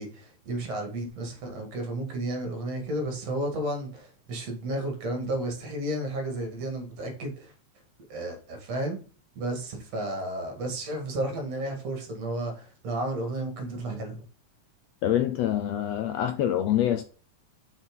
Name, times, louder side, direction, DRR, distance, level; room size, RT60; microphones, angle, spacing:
voice 1, 0.0-7.5 8.1-9.0 9.4-14.2, right 1 dB, 60° right, 3.2 m, -32 dB
voice 2, 15.0-17.0, left 11 dB, 70° left, 1.7 m, -25 dB
6.1 x 6.0 x 5.3 m
omnidirectional pair, 3.5 m